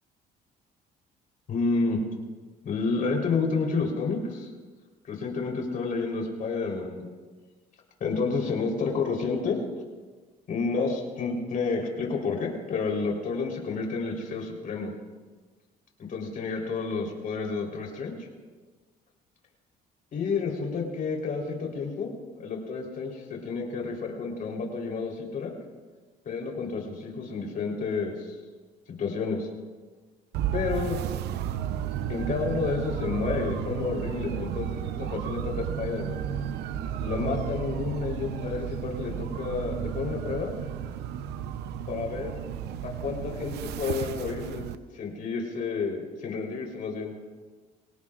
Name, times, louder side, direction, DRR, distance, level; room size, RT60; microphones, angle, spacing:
voice 1, 1.5-2.0 2.6-4.5 5.1-7.1 8.0-9.6 10.5-14.9 16.0-18.1 20.1-22.1 22.3-25.5 26.3-28.4 28.9-29.5 30.5-31.0 32.1-36.2 37.0-40.5 41.9-42.4 42.8-44.6 44.9-47.1, left 4 dB, 55° left, 0 dB, 3.9 m, -30 dB
sound 1, 30.3-44.8, right 9 dB, 80° right, 0.7 m, -33 dB
24.5 x 17.5 x 2.5 m, 1.4 s
cardioid pair, 110°, 17 cm